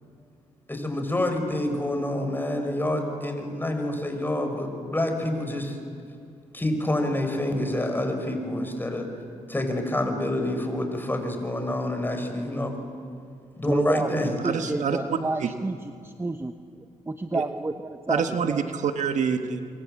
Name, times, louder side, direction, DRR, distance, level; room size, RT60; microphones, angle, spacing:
voice 1, 0.7-5.8 6.5-9.1 9.5-12.8 13.6-14.4, left 1 dB, 15° left, 5 dB, 5.2 m, -27 dB
voice 2, 13.7-18.6, right 2 dB, 20° right, 8 dB, 1.1 m, -30 dB
voice 3, 14.4-15.5 17.3-17.4 18.1-19.6, right 6 dB, 65° right, 7 dB, 1.5 m, -27 dB
25.5 x 24.0 x 7.7 m, 2.4 s
supercardioid pair, 65°, 13 cm